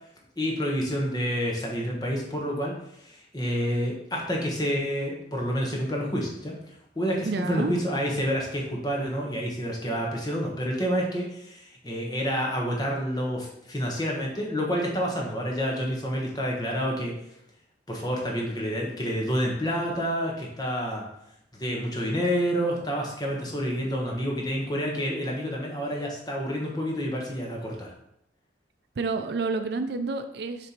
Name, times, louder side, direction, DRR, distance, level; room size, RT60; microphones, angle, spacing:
voice 1, 0.4-17.1 17.9-21.0 21.6-27.9, equal, 20° left, -1 dB, 1.2 m, -29 dB
voice 2, 7.2-7.7 29.0-30.7, right 3 dB, 60° right, 8 dB, 0.4 m, -29 dB
6.8 x 3.4 x 4.4 m, 0.76 s
head